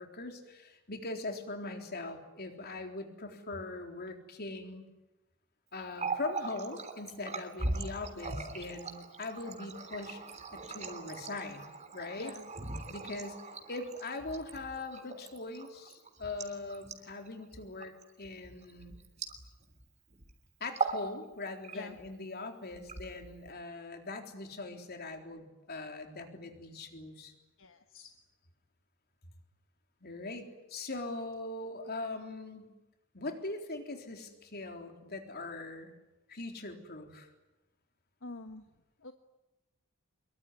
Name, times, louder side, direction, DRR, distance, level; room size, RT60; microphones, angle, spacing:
voice 1, 0.0-4.8 5.7-10.2 10.5-12.3 12.9-13.4 13.7-18.9 20.6-27.3 30.0-32.7 33.1-35.9 36.3-37.3, left 2 dB, 50° left, 4 dB, 3.8 m, -41 dB
Water tap faucet, 5.8-19.8 20.1-20.3 20.6-21.1 21.4-22.1 22.7-23.5, right 4 dB, 35° right, 3.3 m, -40 dB
voice 2, 12.2-12.5 21.7-22.0 27.6-28.1 38.2-38.6 39.0-39.1, left 3 dB, 70° left, 7 dB, 1.4 m, -46 dB
24.5 x 23.0 x 9.8 m, 1.0 s
head